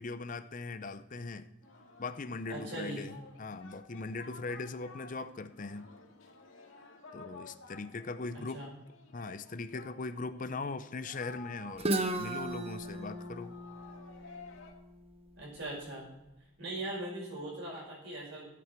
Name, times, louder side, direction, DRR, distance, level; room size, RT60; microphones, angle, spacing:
voice 1, 0.0-1.5 2.0-5.9 7.1-8.6 9.1-13.6, left 3 dB, 40° left, 11 dB, 0.6 m, -40 dB
Singing, 1.6-14.7, left 3 dB, 70° left, 2.1 m, -54 dB
voice 2, 2.5-3.1 8.3-8.7 15.4-16.1 16.6-18.4, right 1 dB, 60° right, -3 dB, 5.2 m, -40 dB
Guitar, 11.8-15.6, right 1 dB, 30° right, 0.8 m, -36 dB
16.0 x 8.7 x 4.5 m, 0.98 s
head